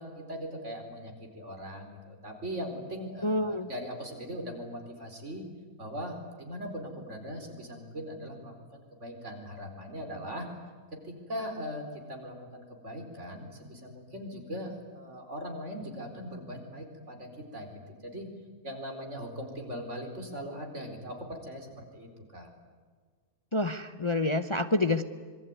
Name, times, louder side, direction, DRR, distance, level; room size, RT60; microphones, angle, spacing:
voice 1, 0.0-5.4 5.8-10.5 11.0-17.7 18.0-18.3 18.6-22.5, equal, 55° right, 3 dB, 4.8 m, -40 dB
voice 2, 3.2-3.7 23.5-25.0, left 2 dB, 25° left, 9 dB, 0.8 m, -27 dB
26.5 x 23.0 x 9.6 m, 1.5 s
omnidirectional pair, 1.5 m